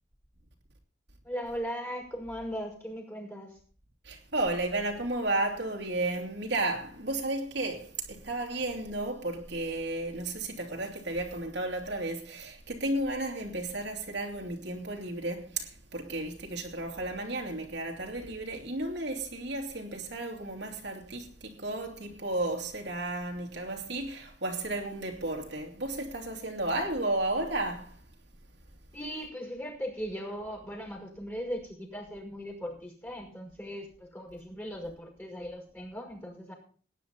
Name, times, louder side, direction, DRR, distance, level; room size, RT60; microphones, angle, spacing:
voice 1, 1.2-3.5 28.9-36.5, equal, 15° left, 5.5 m, -38 dB
voice 2, 4.0-28.0, right 2 dB, 80° right, 2.7 m, -33 dB
18.0 x 10.0 x 4.2 m
head